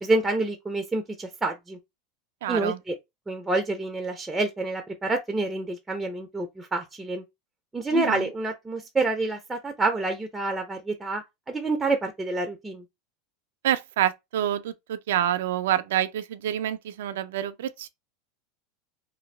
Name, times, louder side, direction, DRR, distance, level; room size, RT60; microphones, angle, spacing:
voice 1, 0.0-1.8 2.5-3.0 3.3-7.2 7.7-12.8, right 2 dB, 10° right, 0.4 m, -28 dB
voice 2, 2.4-2.8 7.9-8.3 13.6-17.9, right 11 dB, 85° right, 0.3 m, -27 dB
2.5 x 2.2 x 3.2 m
supercardioid pair, 130°, 0 cm